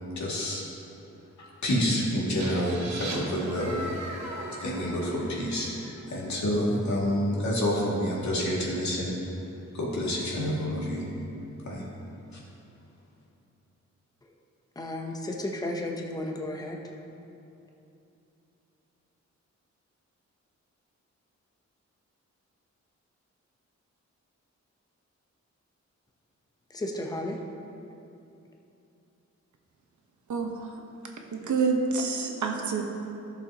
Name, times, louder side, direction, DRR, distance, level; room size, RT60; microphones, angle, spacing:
voice 1, 0.2-0.6 1.6-3.9 4.6-9.2 9.7-11.1 11.6-11.9 12.3-12.4, equal, 75° left, -5 dB, 2.3 m, -28 dB
sound 1, 2.4-6.1, right 1 dB, 65° right, 2.1 m, -38 dB
voice 2, 14.8-16.8 26.7-27.4, left 1 dB, 15° left, 0 dB, 0.7 m, -33 dB
voice 3, 30.3-30.7 31.3-32.8, right 4 dB, 85° right, 2 dB, 1.1 m, -27 dB
15.5 x 6.9 x 2.9 m, 2.8 s
wide cardioid pair, 180°, 29 cm